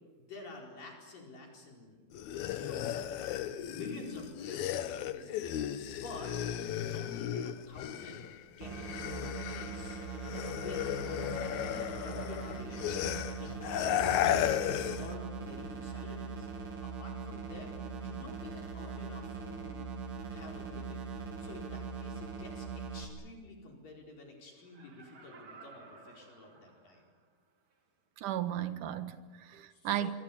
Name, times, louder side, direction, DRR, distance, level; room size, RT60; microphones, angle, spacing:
voice 1, 0.2-3.0 3.3-6.4 6.8-10.0 10.6-16.5 16.8-19.9 20.3-21.1 21.4-27.0 29.7-30.1, left 2 dB, 60° left, 6.1 m, -49 dB
sound 1, 2.1-8.3 8.6-15.1, left 11 dB, 75° left, 1.8 m, -35 dB
sound 2, 8.6-23.1, right 5 dB, 85° right, 5.0 m, -41 dB
Laughter, 24.6-27.2 27.7-27.8, right 4 dB, 35° right, 2.9 m, -55 dB
voice 2, 28.2-30.1, right 11 dB, 65° right, 2.5 m, -35 dB
25.5 x 25.5 x 8.6 m
omnidirectional pair, 4.5 m